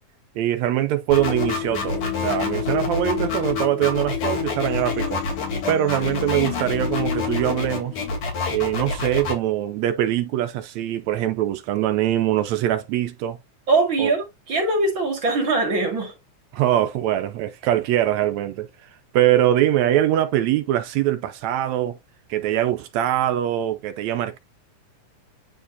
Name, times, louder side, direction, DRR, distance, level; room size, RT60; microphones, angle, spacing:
voice 1, 0.4-5.2 5.7-8.0 8.5-13.4 14.0-14.1 16.5-22.0 22.3-24.4, right 12 dB, 75° right, 1.7 m, -23 dB
sound 1, 1.1-9.3, left 3 dB, 65° left, 4.2 m, -27 dB
sound 2, 1.2-8.1, left 19 dB, 85° left, 2.2 m, -31 dB
voice 2, 13.7-16.1, right 3 dB, 40° right, 2.5 m, -22 dB
9.9 x 4.4 x 2.7 m
omnidirectional pair, 3.6 m